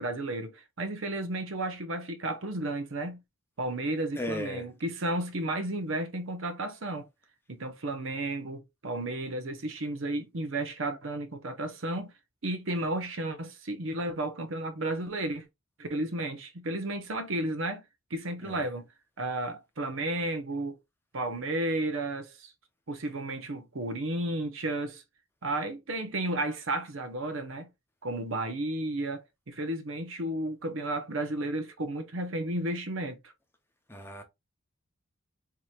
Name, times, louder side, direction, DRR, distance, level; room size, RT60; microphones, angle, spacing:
voice 1, 0.0-3.2 3.6-7.1 7.5-12.1 12.4-15.5 15.8-17.8 18.1-18.9 19.2-20.8 21.1-22.5 22.9-25.0 25.4-27.7 28.0-33.3, right 1 dB, 60° right, 0.8 m, -33 dB
voice 2, 4.1-4.7 18.4-18.7 33.9-34.2, left 1 dB, 10° left, 0.7 m, -36 dB
4.8 x 2.9 x 2.3 m
head